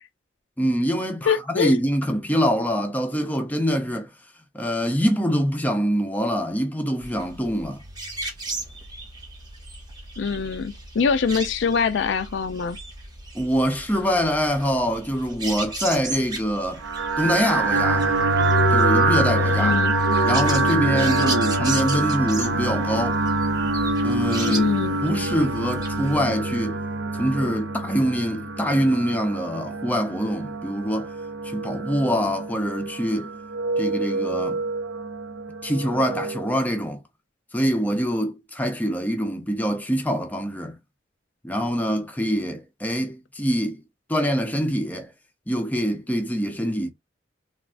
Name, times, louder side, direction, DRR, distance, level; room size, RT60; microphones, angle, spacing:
voice 1, 0.6-4.1 4.5-7.8 13.3-16.8 17.2-18.1 18.7-19.8 20.2-23.2 24.0-24.7 25.0-26.8 27.1-31.1 31.4-33.3 33.8-34.6 35.6-37.0 37.5-40.8 41.4-43.8 44.1-45.1 45.5-46.9, equal, 10° left, 0.5 m, -24 dB
voice 2, 1.3-1.8 10.2-12.8 19.6-19.9 24.5-25.0, left 5 dB, 70° left, 0.4 m, -23 dB
sound 1, 7.0-26.2, right 2 dB, 20° right, 0.9 m, -36 dB
sound 2, 16.8-36.5, right 2 dB, 80° right, 0.5 m, -25 dB
3.3 x 2.4 x 2.4 m
head